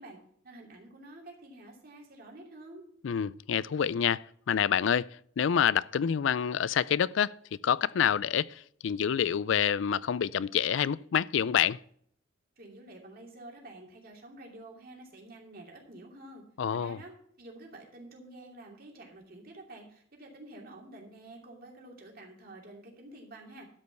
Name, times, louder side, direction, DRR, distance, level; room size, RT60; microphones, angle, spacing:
voice 1, 0.0-2.8 12.6-16.4 16.7-23.7, right 1 dB, 50° right, 2.8 m, -49 dB
voice 2, 3.0-5.0 5.4-7.3 7.6-11.8 16.6-17.0, left 8 dB, 70° left, 0.4 m, -27 dB
12.5 x 5.3 x 6.8 m
head